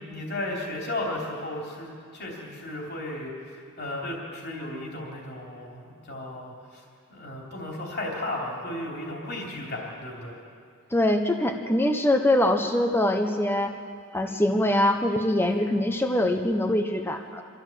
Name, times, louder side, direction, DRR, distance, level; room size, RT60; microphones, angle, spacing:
voice 1, 0.0-6.8 7.1-10.4, left 1 dB, 45° left, -2 dB, 3.3 m, -34 dB
voice 2, 10.9-13.7 14.1-17.4, left 1 dB, 10° left, 5 dB, 0.8 m, -23 dB
25.0 x 14.0 x 7.4 m, 2.3 s
head